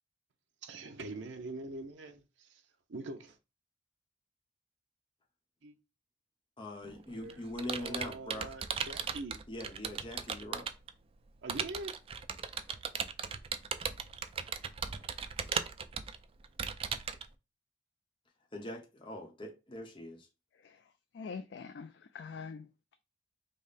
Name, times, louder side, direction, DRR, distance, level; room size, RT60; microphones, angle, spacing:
voice 1, 0.6-2.6 2.9-3.4 5.6-5.7 7.1-7.5 7.8-9.4 11.4-12.0, right 2 dB, 75° right, 0.6 m, -43 dB
voice 2, 6.6-8.5 9.5-10.7 18.5-20.3, left 1 dB, 25° left, 0.8 m, -42 dB
Computer keyboard, 6.8-10.9 11.5-17.3, right 6 dB, 30° right, 0.3 m, -37 dB
voice 3, 21.1-22.7, left 5 dB, 65° left, 0.3 m, -44 dB
5.2 x 2.1 x 4.0 m
head